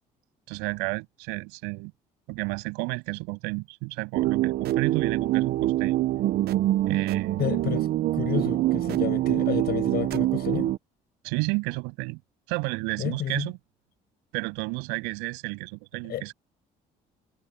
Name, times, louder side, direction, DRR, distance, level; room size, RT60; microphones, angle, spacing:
voice 1, 0.5-1.9 2.3-6.0 6.9-7.4 11.2-12.2 12.5-13.5 14.3-16.3, right 29 dB, 85° right, 7.6 m, -31 dB
sound 1, 4.1-10.8, right 14 dB, 65° right, 0.7 m, -25 dB
voice 2, 7.4-10.7 13.0-13.5 16.1-16.3, left 11 dB, 65° left, 6.5 m, -31 dB
supercardioid pair, 75°, 18 cm